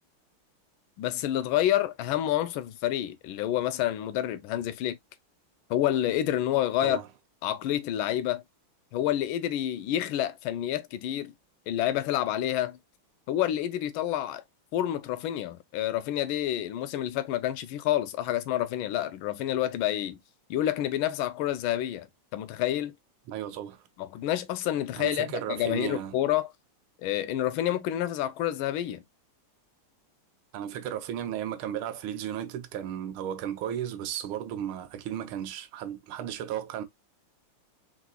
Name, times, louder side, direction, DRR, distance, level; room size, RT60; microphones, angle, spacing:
voice 1, 1.0-5.0 5.7-7.0 7.4-8.4 8.9-11.3 11.7-12.8 13.3-14.4 14.7-20.2 20.5-22.1 22.3-22.9 24.0-26.5 27.0-29.0, left 12 dB, 75° left, 1.4 m, -28 dB
voice 2, 23.3-23.8 25.0-26.2 30.5-36.8, right 10 dB, 80° right, 1.6 m, -34 dB
4.6 x 4.1 x 2.3 m
omnidirectional pair, 2.4 m